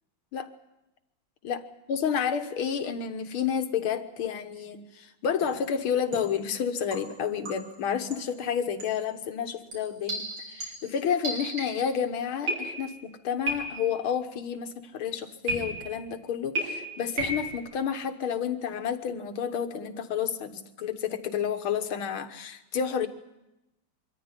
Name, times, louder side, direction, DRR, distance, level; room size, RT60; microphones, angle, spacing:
voice 1, 1.9-23.1, left 7 dB, 80° left, 8 dB, 2.1 m, -30 dB
sound 1, 5.4-5.7 6.1-6.4 6.9-7.8 8.1-8.4 8.8-9.0 9.7-12.0 12.5-13.0 13.5-14.0 15.5-16.1 16.6-17.6, right 1 dB, 75° right, 5.2 m, -34 dB
23.5 x 14.0 x 9.7 m, 0.93 s
omnidirectional pair, 2.3 m